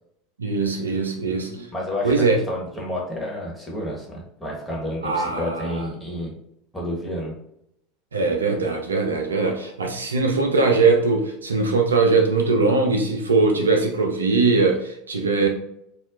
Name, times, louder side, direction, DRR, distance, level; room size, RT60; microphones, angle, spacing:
voice 1, 0.4-1.7 2.0-2.4 5.0-5.9 8.1-15.5, right 3 dB, 80° right, 3 dB, 0.4 m, -21 dB
voice 2, 1.7-6.3 6.7-7.3, left 1 dB, 5° left, -4 dB, 1.3 m, -30 dB
4.2 x 2.3 x 2.5 m, 0.77 s
figure-of-eight pair, 75°, 0 cm